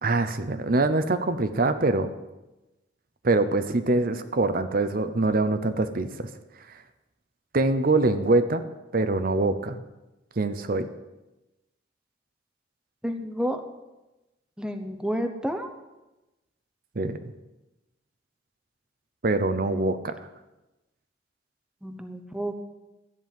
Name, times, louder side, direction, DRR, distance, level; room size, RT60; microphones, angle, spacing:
voice 1, 0.0-2.1 3.2-6.3 7.5-8.6 8.9-9.8 10.4-10.9 17.0-17.2 19.2-20.1, right 2 dB, 50° right, 10 dB, 0.7 m, -24 dB
voice 2, 13.0-13.6 14.6-15.7 19.6-19.9 21.8-22.7, equal, 5° right, 5 dB, 0.9 m, -30 dB
13.0 x 5.4 x 9.3 m, 1.0 s
head